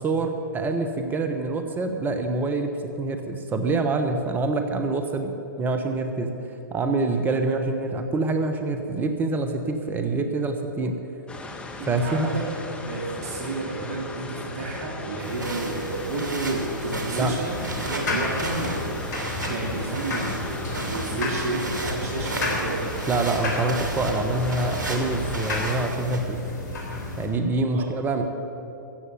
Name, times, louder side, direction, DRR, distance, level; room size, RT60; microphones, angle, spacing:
voice 1, 0.0-11.0 11.9-12.3 17.1-17.3 23.1-26.4 27.2-28.3, right 3 dB, 15° right, 6 dB, 1.0 m, -26 dB
sound 1, 11.3-25.9, left 2 dB, 10° left, 1.5 m, -38 dB
voice 2, 11.8-12.5 12.8-19.0 19.5-22.9 27.7-27.9, right 2 dB, 45° right, -1 dB, 2.5 m, -31 dB
sound 2, 15.2-26.2, right 2 dB, 65° right, 2.6 m, -34 dB
sound 3, 17.4-27.3, left 2 dB, 60° left, 3.8 m, -32 dB
14.5 x 8.1 x 9.4 m, 2.9 s
figure-of-eight pair, 115°, 11 cm